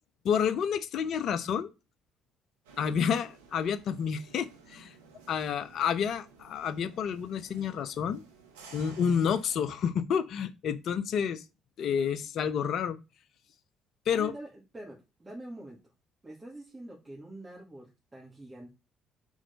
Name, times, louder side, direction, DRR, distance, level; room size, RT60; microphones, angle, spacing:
voice 1, 0.2-1.7 2.8-4.9 5.3-8.2 8.7-11.4 11.8-13.0 14.1-14.3, left 7 dB, 60° left, 0.7 m, -29 dB
sound 1, 2.6-9.9, right 4 dB, 85° right, 1.1 m, -55 dB
voice 2, 14.1-15.9 16.2-18.8, right 1 dB, 25° right, 2.2 m, -45 dB
4.8 x 4.4 x 5.3 m
hypercardioid pair, 50°, 0 cm